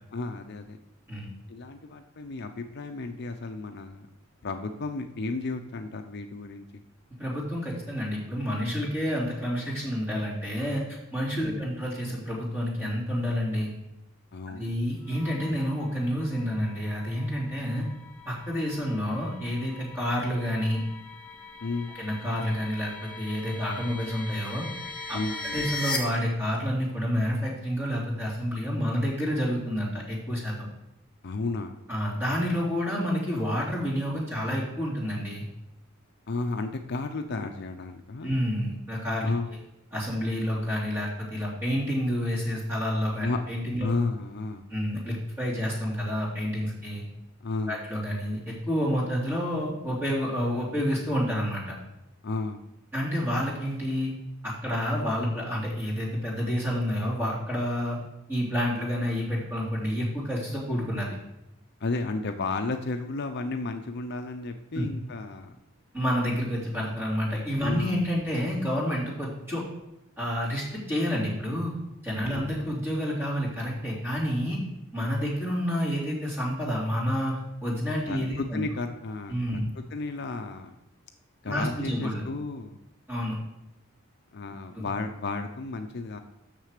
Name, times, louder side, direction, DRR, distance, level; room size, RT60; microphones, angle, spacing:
voice 1, 0.1-0.8 1.5-4.1 4.4-6.6 11.4-11.6 14.3-14.8 21.6-21.9 25.1-25.6 31.2-31.8 36.3-38.3 39.2-39.5 43.2-43.4 43.8-44.6 47.4-47.8 52.2-52.6 61.8-65.6 67.6-68.0 72.2-72.7 78.1-79.4 79.7-80.8 81.4-82.8 84.3-86.2, left 3 dB, 55° left, 6 dB, 0.5 m, -33 dB
voice 2, 7.2-13.7 14.5-17.9 18.3-20.8 22.0-24.7 25.1-25.2 25.5-30.5 31.9-35.5 38.2-39.3 39.9-43.9 44.7-47.0 47.7-51.7 52.9-54.1 54.4-58.0 58.3-61.1 64.7-64.8 65.9-69.6 70.2-71.7 72.0-74.6 74.9-78.6 79.3-79.7 81.4-82.2 83.1-83.4 84.7-84.9, equal, 10° right, -6 dB, 3.1 m, -29 dB
sound 1, 15.0-26.0, left 3 dB, 5° left, 1.6 m, -40 dB
6.7 x 6.3 x 6.6 m, 0.86 s
head